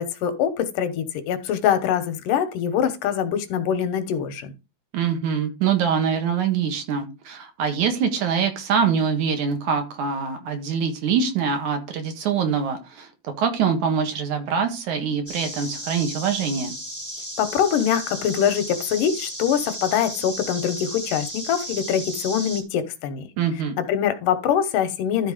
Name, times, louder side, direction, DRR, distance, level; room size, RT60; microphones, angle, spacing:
voice 1, 0.0-4.5 17.4-23.3 23.9-25.3, left 9 dB, 85° left, 2.7 m, -23 dB
voice 2, 4.9-13.1 13.4-16.8 23.4-23.8, right 6 dB, 70° right, 3.0 m, -24 dB
sound 1, 15.3-22.6, equal, 10° right, 1.2 m, -34 dB
12.5 x 4.3 x 4.9 m
omnidirectional pair, 3.6 m